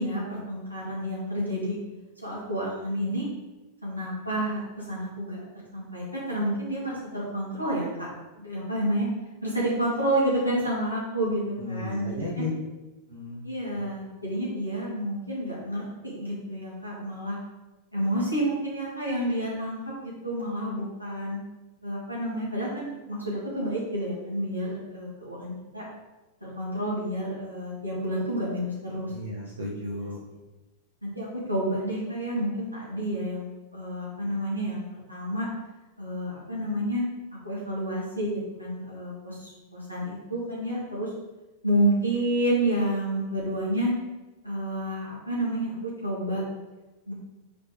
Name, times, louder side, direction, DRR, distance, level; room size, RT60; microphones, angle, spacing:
voice 1, 0.0-1.8 2.2-3.3 3.8-9.1 9.4-12.4 13.4-17.4 17.9-21.4 21.8-25.9 26.4-29.1 31.0-35.5 36.0-37.0 37.4-41.1 41.6-43.9 44.4-46.4 47.1-47.2, right 1 dB, 90° right, -7 dB, 2.3 m, -29 dB
voice 2, 11.6-12.5 13.1-13.4 29.1-30.2, left 1 dB, 70° right, -6 dB, 1.5 m, -34 dB
5.2 x 4.2 x 5.1 m, 1.1 s
figure-of-eight pair, 90°, 0 cm